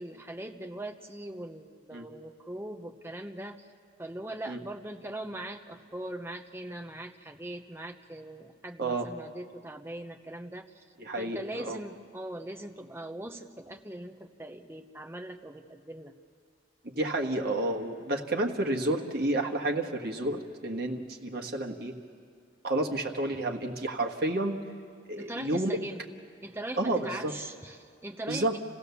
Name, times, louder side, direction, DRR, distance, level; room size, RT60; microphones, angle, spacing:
voice 1, 0.0-3.7 4.0-10.8 11.2-16.1 25.2-26.0 26.4-28.6, right 1 dB, 15° right, 5 dB, 0.9 m, -41 dB
voice 2, 11.0-11.8 16.8-21.9 22.6-24.6 25.1-25.7 26.8-27.3 28.3-28.6, right 1 dB, 55° right, 1 dB, 1.5 m, -30 dB
27.0 x 16.0 x 7.0 m, 2.3 s
head